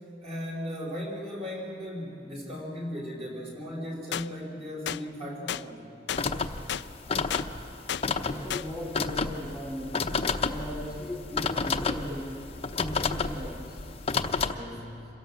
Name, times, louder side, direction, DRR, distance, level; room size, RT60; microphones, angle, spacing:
voice 1, 0.2-5.8 14.4-15.1, equal, 35° right, -1 dB, 4.8 m, -37 dB
sound 1, 4.1-4.3 4.9-5.0 5.5-5.6 6.1-6.2 6.7-6.8 7.3-7.5 7.9-8.0 8.5-8.7, left 9 dB, 70° left, 0.4 m, -32 dB
sound 2, 6.1-14.5, left 4 dB, 35° left, 0.8 m, -31 dB
voice 2, 8.1-10.1 10.4-12.5 12.8-13.8, equal, 5° right, -3 dB, 2.3 m, -37 dB
26.5 x 17.0 x 7.6 m, 2.8 s
head